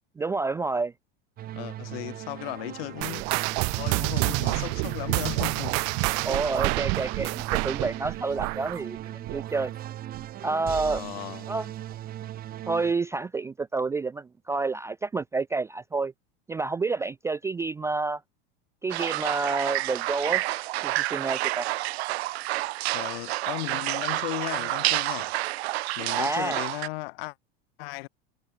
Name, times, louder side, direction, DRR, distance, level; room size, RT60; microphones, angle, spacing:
voice 1, 0.2-0.9 6.2-9.7 10.4-11.0 11.5-11.7 12.7-16.1 16.5-18.2 18.8-20.4 20.8-21.7 26.2-26.6, right 3 dB, 10° right, 0.4 m, -29 dB
sound 1, 1.4-12.9, right 12 dB, 30° right, 1.0 m, -39 dB
voice 2, 1.5-3.2 3.8-6.1 10.8-11.5 22.9-25.4 26.0-27.3 27.8-28.1, left 23 dB, 70° left, 3.9 m, -36 dB
sound 2, 3.0-9.9 10.1-10.5 11.0-11.1 11.9-12.0, right 35 dB, 50° right, 1.3 m, -28 dB
sound 3, 18.9-26.9, right 19 dB, 80° right, 0.9 m, -29 dB
supercardioid pair, 140°, 31 cm